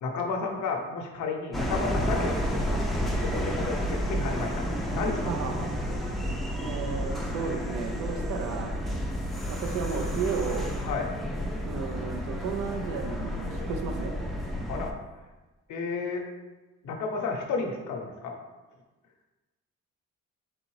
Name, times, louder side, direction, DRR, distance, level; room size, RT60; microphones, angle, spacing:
voice 1, 0.0-2.3 3.2-4.7 4.9-5.3 10.9-11.1 14.7-14.9 15.7-16.2 16.8-18.3, left 4 dB, 75° left, 2 dB, 0.8 m, -32 dB
sound 1, 1.5-14.9, equal, ahead, 0.5 m, -31 dB
voice 2, 5.2-5.7 6.6-8.8 9.5-10.7 11.6-14.1, right 6 dB, 75° right, 5 dB, 0.6 m, -33 dB
3.8 x 3.7 x 3.1 m, 1.2 s
cardioid pair, 90°, 30 cm